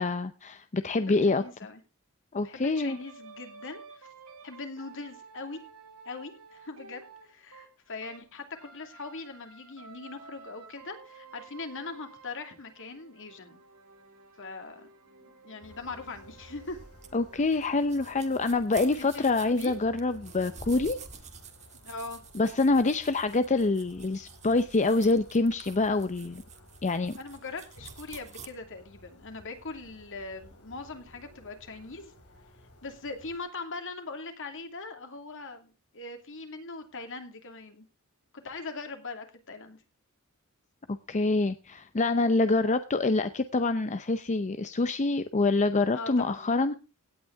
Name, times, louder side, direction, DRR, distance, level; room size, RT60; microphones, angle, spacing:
voice 1, 0.0-1.4 2.3-3.0 17.1-21.0 22.3-26.4 26.8-27.2 41.1-46.7, left 3 dB, 35° left, 11 dB, 0.6 m, -26 dB
voice 2, 1.0-1.8 2.4-4.1 4.4-5.6 6.0-13.6 14.4-14.9 15.4-16.8 19.0-19.8 21.8-22.2 27.2-32.1 32.8-37.8 38.4-39.8 45.9-46.4, left 3 dB, 60° left, 6 dB, 2.6 m, -41 dB
sound 1, 2.8-8.2 8.5-18.8, right 4 dB, 90° right, 3.8 m, -52 dB
sound 2, 15.6-33.4, left 1 dB, 90° left, 4.9 m, -54 dB
sound 3, 17.0-28.5, right 6 dB, 30° right, 1.6 m, -49 dB
17.0 x 9.2 x 3.4 m, 0.31 s
head